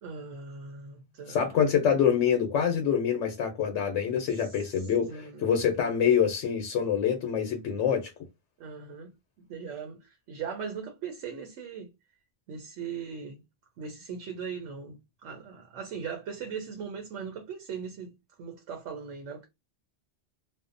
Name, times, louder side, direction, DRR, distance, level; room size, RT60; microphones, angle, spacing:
voice 1, 0.0-1.4 4.4-5.5 8.6-11.9 12.5-13.4 13.8-19.5, right 6 dB, 80° right, 1.0 m, -39 dB
voice 2, 1.3-8.1, left 8 dB, 85° left, 0.9 m, -26 dB
2.5 x 2.1 x 2.5 m
omnidirectional pair, 1.2 m